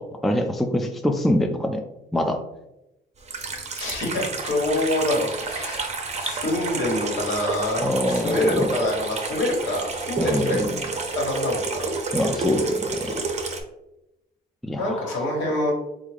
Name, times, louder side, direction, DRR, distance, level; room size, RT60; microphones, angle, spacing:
voice 1, 0.0-1.8 2.1-2.4 7.8-8.7 10.2-10.7 12.1-13.2 14.6-15.3, left 1 dB, ahead, 4 dB, 0.3 m, -25 dB
Water tap faucet / Sink (filling or washing), 3.2-13.6, right 3 dB, 35° right, 0.7 m, -30 dB
voice 2, 3.8-5.9 6.2-10.7 11.1-11.9 14.8-15.7, left 1 dB, 75° left, -2 dB, 1.3 m, -26 dB
3.5 x 2.4 x 3.2 m, 0.89 s
cardioid pair, 90°, 20 cm